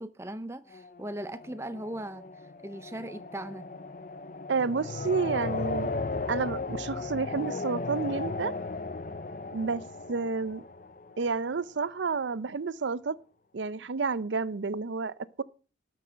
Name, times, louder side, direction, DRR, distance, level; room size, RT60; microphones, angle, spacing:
voice 1, 0.0-2.2 2.6-3.7, right 1 dB, 15° right, 0.6 m, -38 dB
sound 1, 0.7-11.5, left 3 dB, 45° left, 0.7 m, -36 dB
voice 2, 4.5-5.9 6.3-8.5 9.5-9.8 10.1-10.6 11.2-13.2 13.5-15.4, right 4 dB, 85° right, 0.6 m, -30 dB
12.5 x 6.2 x 6.3 m
head